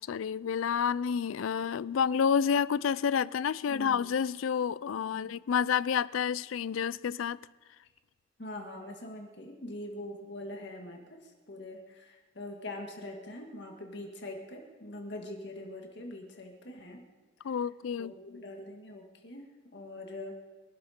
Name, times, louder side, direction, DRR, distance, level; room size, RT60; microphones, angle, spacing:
voice 1, 0.1-7.4 17.4-18.4, left 7 dB, 85° left, 0.4 m, -29 dB
voice 2, 3.7-4.1 5.1-5.4 8.4-11.2 11.5-17.0 18.0-20.4, left 1 dB, 60° left, 1.9 m, -43 dB
24.0 x 12.0 x 4.4 m
head